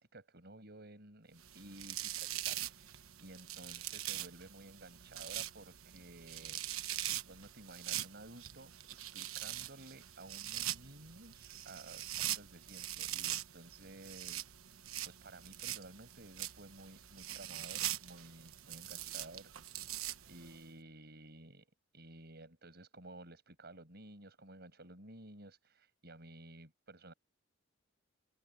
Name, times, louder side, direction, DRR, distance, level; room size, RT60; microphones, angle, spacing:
voice 1, 0.0-6.6 6.9-14.5 15.0-19.9 20.3-21.7 21.9-27.1, right 2 dB, 50° right, 6.5 m, -54 dB
sound 1, 1.4-20.6, right 13 dB, 85° right, 1.1 m, -43 dB
open air
head